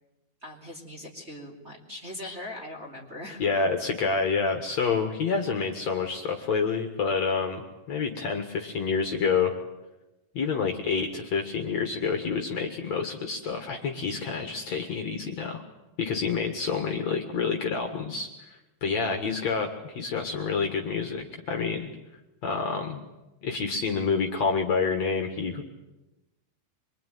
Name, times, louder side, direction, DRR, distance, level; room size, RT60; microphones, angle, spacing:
voice 1, 0.4-3.7 5.1-5.4, left 1 dB, 20° right, -1 dB, 3.0 m, -41 dB
voice 2, 3.4-9.5 10.3-15.6 16.0-18.3 18.8-21.9 22.4-23.0 23.4-25.6, left 5 dB, 55° left, 4 dB, 2.6 m, -28 dB
25.0 x 23.5 x 9.4 m, 1.0 s
omnidirectional pair, 4.3 m